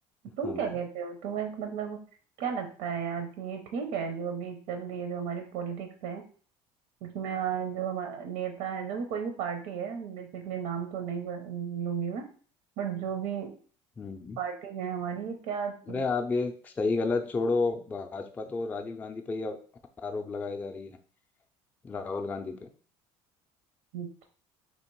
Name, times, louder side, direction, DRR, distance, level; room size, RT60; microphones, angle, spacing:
voice 1, 0.4-2.0 2.4-6.2 7.0-12.2 12.8-13.5 14.4-16.0 23.9-24.2, right 7 dB, 85° right, 5 dB, 0.7 m, -34 dB
voice 2, 14.0-14.4 15.9-19.6 20.0-21.0 21.8-22.7, left 3 dB, 15° left, 4 dB, 0.3 m, -31 dB
2.9 x 2.8 x 4.5 m, 0.42 s
cardioid pair, 150°, 12 cm